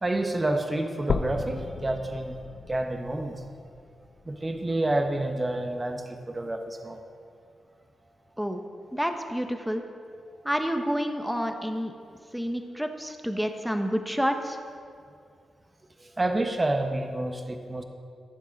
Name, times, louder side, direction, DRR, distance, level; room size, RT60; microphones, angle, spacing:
voice 1, 0.0-2.4 2.7-3.5 4.2-7.0 16.0-17.8, right 1 dB, 30° right, 5 dB, 1.2 m, -29 dB
sound 1, 1.1-5.1 5.7-5.8 6.3-6.4 6.8-6.9 7.7-7.8, left 5 dB, 60° left, 0.6 m, -35 dB
voice 2, 8.9-9.8 10.4-11.9 12.3-14.6, equal, ahead, 5 dB, 1.2 m, -29 dB
15.5 x 7.2 x 5.3 m, 2.3 s
supercardioid pair, 45°, 0 cm